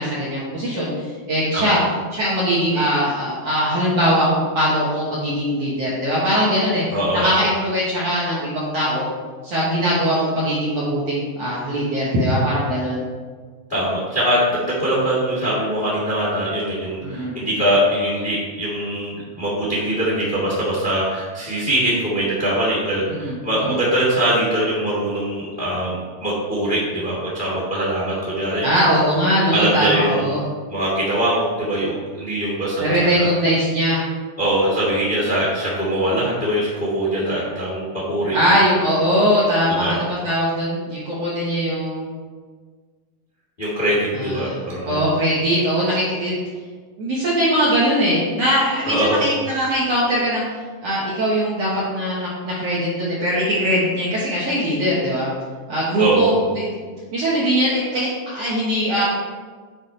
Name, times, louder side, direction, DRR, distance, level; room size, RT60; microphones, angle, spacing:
voice 1, 0.0-1.8 2.1-6.8 7.1-9.0 9.4-13.0 17.0-17.4 23.1-23.8 28.6-30.4 32.8-34.0 38.3-42.1 44.1-44.6 44.8-46.3 47.0-50.4 50.8-55.3 55.7-56.7 57.1-59.0, equal, 65° right, -7 dB, 1.7 m, -21 dB
voice 2, 6.9-7.3 13.7-28.6 29.5-30.3 30.7-33.3 34.4-38.3 39.8-39.9 43.6-45.1 48.8-49.2 56.0-56.4, right 1 dB, 65° left, -7 dB, 0.5 m, -22 dB
8.8 x 4.9 x 4.4 m, 1.5 s
omnidirectional pair, 4.8 m